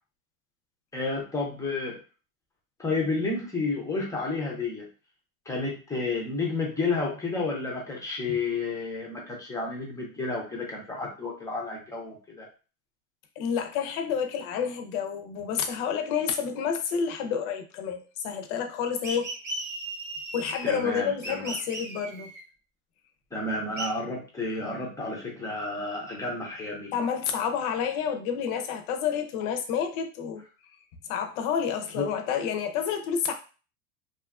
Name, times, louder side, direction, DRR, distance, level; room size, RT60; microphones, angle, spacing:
voice 1, 0.9-2.0 2.8-4.9 5.5-12.5 20.6-21.5 23.3-26.9 32.0-32.1, left 3 dB, 5° left, 0.5 m, -31 dB
voice 2, 13.4-19.3 20.3-22.3 26.9-30.4 31.0-33.3, left 7 dB, 50° left, 0.6 m, -29 dB
sound 1, 19.0-20.9 21.2-22.4 23.8-23.9, right 2 dB, 25° right, 0.9 m, -36 dB
2.6 x 2.4 x 2.4 m
supercardioid pair, 130°, 46 cm